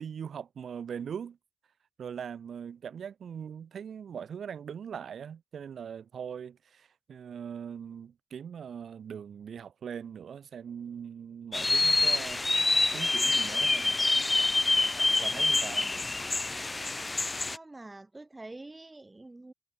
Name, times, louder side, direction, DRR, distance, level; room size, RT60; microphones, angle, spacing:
voice 1, 0.0-1.4 2.0-12.6 12.9-14.0 15.2-15.9, right 7 dB, 80° right, 4.9 m, -41 dB
sound 1, 11.5-17.6, left 2 dB, 20° left, 0.6 m, -26 dB
voice 2, 17.5-19.5, right 2 dB, 20° right, 4.6 m, -47 dB
wide cardioid pair, 140°, 0 cm